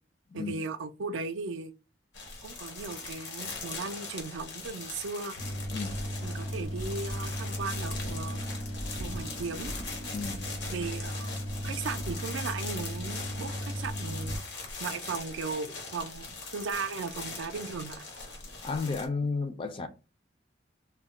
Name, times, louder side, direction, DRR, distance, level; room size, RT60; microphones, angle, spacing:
voice 1, 0.3-1.7 2.4-5.4 6.2-8.4 9.0-9.7 10.7-11.3 11.6-14.4 14.8-18.1, right 4 dB, 85° right, 0.4 m, -37 dB
sound 1, 2.1-19.1, left 4 dB, 65° left, 0.8 m, -41 dB
sound 2, 5.4-14.4, equal, 85° left, 1.1 m, -36 dB
voice 2, 10.1-10.4 18.6-19.9, left 4 dB, 30° left, 0.3 m, -32 dB
2.2 x 2.1 x 3.6 m
head